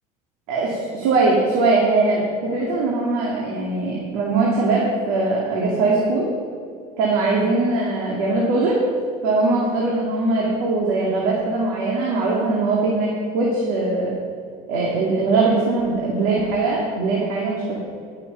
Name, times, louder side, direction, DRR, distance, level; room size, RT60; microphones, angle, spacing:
voice 1, 0.5-2.2 2.5-6.3 7.0-8.8 9.2-13.1 13.3-14.1 14.7-17.8, right 3 dB, 80° right, -4 dB, 2.4 m, -21 dB
16.5 x 6.9 x 5.8 m, 2.3 s
supercardioid pair, 85°, 19 cm